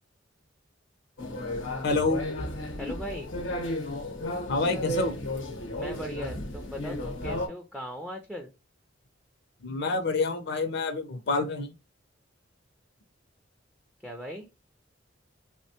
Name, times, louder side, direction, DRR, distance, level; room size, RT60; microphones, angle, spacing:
sound 1, 1.2-7.5, left 1 dB, 90° left, 0.8 m, -34 dB
voice 1, 1.8-2.2 4.5-5.1 9.6-11.7, left 3 dB, 60° left, 0.5 m, -27 dB
voice 2, 2.8-3.3 5.8-8.5 14.0-14.5, equal, 5° right, 0.3 m, -38 dB
3.2 x 2.1 x 2.7 m
head